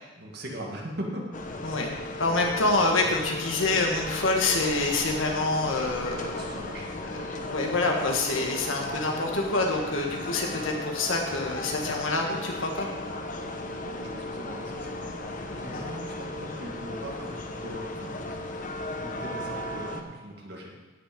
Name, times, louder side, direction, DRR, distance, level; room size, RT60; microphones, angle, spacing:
voice 1, 0.2-1.2 6.3-6.9 10.2-10.4 13.8-15.1 15.4-18.1 19.0-20.7, right 1 dB, 50° right, -1 dB, 2.0 m, -39 dB
sound 1, 1.3-20.0, left 1 dB, 40° left, 1.0 m, -36 dB
voice 2, 2.2-6.4 7.0-12.9 15.7-15.8, left 2 dB, 70° left, 1 dB, 1.5 m, -27 dB
16.5 x 6.2 x 5.2 m, 1.2 s
head